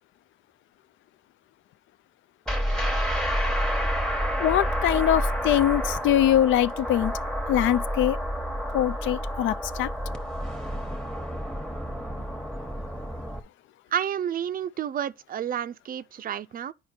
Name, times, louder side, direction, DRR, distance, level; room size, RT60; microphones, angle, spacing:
sound 1, 2.5-13.4, equal, 5° left, 1.1 m, -29 dB
voice 1, 4.4-7.1 7.5-8.2 8.7-9.9, left 12 dB, 80° left, 0.4 m, -23 dB
voice 2, 13.9-16.7, right 9 dB, 45° right, 0.4 m, -30 dB
9.4 x 5.1 x 4.3 m
cardioid pair, 90°, 20 cm